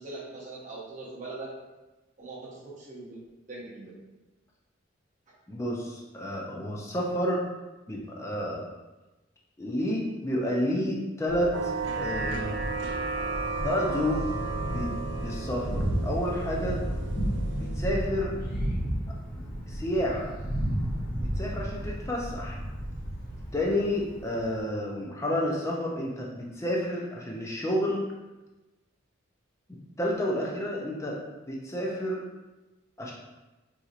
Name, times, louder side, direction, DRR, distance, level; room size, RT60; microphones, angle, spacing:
voice 1, 0.0-1.5 2.2-3.2 3.4-4.0, right 3 dB, 40° right, -5 dB, 0.9 m, -41 dB
voice 2, 5.5-7.4 7.9-8.7 9.6-11.7 12.0-12.6 13.6-14.3 14.7-14.9 15.2-16.8 17.6-18.4 19.3-20.3 21.2-22.6 23.5-28.0 30.0-31.2 31.5-32.2 33.0-33.1, equal, 15° left, -3 dB, 0.5 m, -30 dB
Thunder, 11.3-24.6, equal, 45° left, 1.0 m, -33 dB
sound 1, 11.5-17.8, right 4 dB, 65° right, 0.3 m, -34 dB
4.2 x 2.8 x 2.5 m, 1.1 s
head